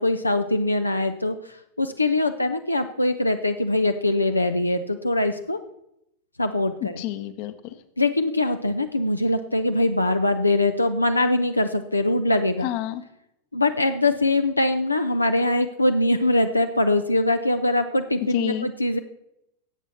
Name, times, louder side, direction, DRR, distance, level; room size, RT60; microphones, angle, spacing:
voice 1, 0.0-1.4 1.8-5.6 6.4-7.0 8.0-12.7 13.5-19.0, left 2 dB, 85° left, 7 dB, 0.6 m, -22 dB
voice 2, 7.0-7.7 12.6-13.0 18.3-18.7, left 13 dB, 45° left, 11 dB, 1.0 m, -29 dB
17.0 x 8.2 x 4.2 m, 0.80 s
figure-of-eight pair, 90°, 0 cm